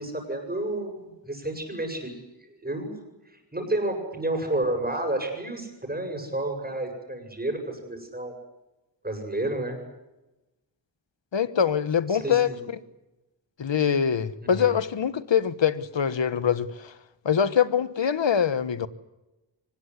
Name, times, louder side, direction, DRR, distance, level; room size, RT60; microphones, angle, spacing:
voice 1, 0.0-2.2 2.5-2.9 3.5-8.3 9.0-9.8 12.1-12.6 14.4-14.7, right 1 dB, 20° right, 3 dB, 7.7 m, -30 dB
voice 2, 11.3-12.8 13.6-16.9 17.2-18.9, left 8 dB, 75° left, 15 dB, 1.3 m, -24 dB
24.5 x 20.5 x 9.9 m, 1.0 s
wide cardioid pair, 100°, 44 cm